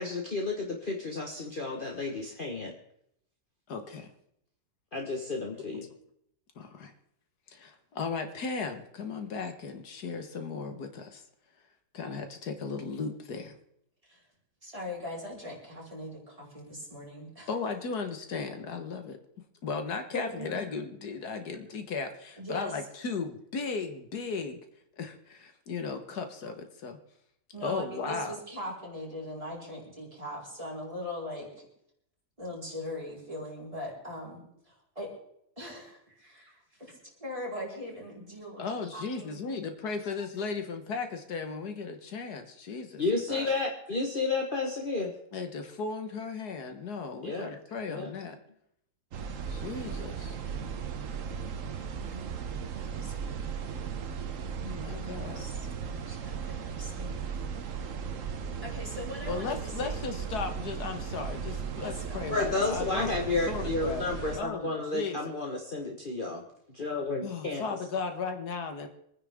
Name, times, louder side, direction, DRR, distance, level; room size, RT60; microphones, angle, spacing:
voice 1, 0.0-2.7 4.9-5.9 43.0-45.1 47.2-47.5 47.9-48.1 62.3-67.7, left 3 dB, 35° left, 0 dB, 1.5 m, -31 dB
voice 2, 3.7-4.1 6.6-6.9 7.5-11.2 11.9-13.6 17.5-19.2 19.6-24.6 25.0-27.0 27.6-28.4 38.6-43.0 43.3-43.5 45.3-48.4 49.5-50.4 54.6-55.5 59.3-63.1 63.5-64.1 64.4-65.3 67.2-68.9, left 4 dB, 85° left, 6 dB, 1.9 m, -36 dB
voice 3, 14.6-17.5 20.1-20.5 22.4-22.7 26.1-26.2 27.5-31.7 32.4-35.1 35.6-38.7 38.9-39.4 51.9-52.5 52.7-53.6 54.5-55.7 56.1-57.2 57.8-58.0 58.6-59.9 61.8-62.5 62.8-62.9 63.5-63.7, left 1 dB, 20° right, -5 dB, 4.7 m, -41 dB
sound 1, 49.1-64.4, right 6 dB, 60° right, 1.3 m, -36 dB
26.0 x 9.8 x 3.6 m, 0.73 s
omnidirectional pair, 1.6 m